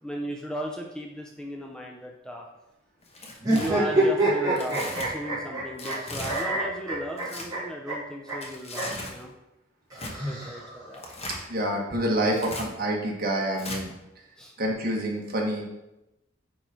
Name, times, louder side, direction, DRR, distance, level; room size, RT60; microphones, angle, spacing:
voice 1, 0.0-2.5 3.5-9.3 10.2-11.0 14.4-14.5, equal, 5° left, 0 dB, 0.6 m, -36 dB
Tearing, 3.0-3.7 4.6-5.1 5.8-6.4 7.1-7.5 8.3-9.2 9.9-10.1 10.9-11.4 12.3-12.6 13.6-13.8, left 2 dB, 30° left, 1.2 m, -37 dB
sound 1, 3.4-6.0 6.2-7.6 7.9-8.0 8.3-8.4 8.7-8.9 9.9-10.9, right 2 dB, 20° right, 2.7 m, -26 dB
voice 2, 11.5-13.9 14.6-15.6, right 1 dB, 50° right, -1 dB, 1.6 m, -27 dB
9.2 x 3.9 x 4.4 m, 0.92 s
head